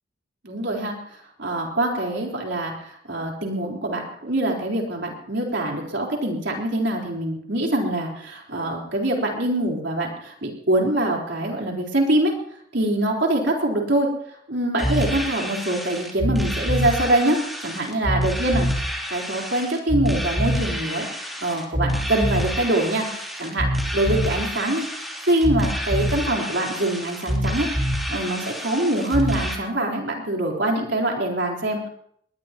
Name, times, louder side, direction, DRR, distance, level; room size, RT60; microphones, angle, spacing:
voice 1, 0.4-0.9 1.4-12.3 12.7-14.1 14.5-18.7 19.1-21.1 21.4-24.9 25.2-31.9, right 1 dB, 65° right, 0 dB, 4.3 m, -24 dB
sound 1, 14.8-29.5, equal, ahead, 3.2 m, -26 dB
21.0 x 20.5 x 3.1 m, 0.67 s
head